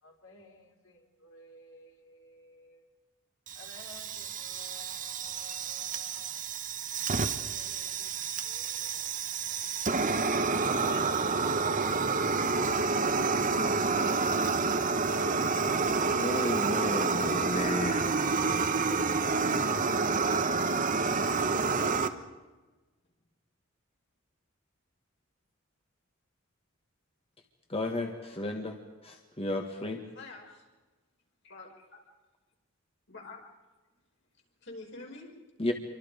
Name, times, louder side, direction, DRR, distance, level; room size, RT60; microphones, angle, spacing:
voice 1, 0.0-2.8 3.5-6.4 7.1-8.2 8.4-10.2 10.8-11.1, left 2 dB, 80° left, 1 dB, 4.5 m, -55 dB
Fire, 3.5-22.1, right 4 dB, 40° right, 1.2 m, -29 dB
voice 2, 16.2-18.2 27.7-28.8 29.0-30.0 35.6-35.7, left 1 dB, 30° left, 3 dB, 1.8 m, -33 dB
voice 3, 30.1-30.7 31.4-32.0 33.1-33.4 34.6-35.3, left 3 dB, 60° left, 0 dB, 5.9 m, -46 dB
28.0 x 25.0 x 5.2 m, 1.2 s
head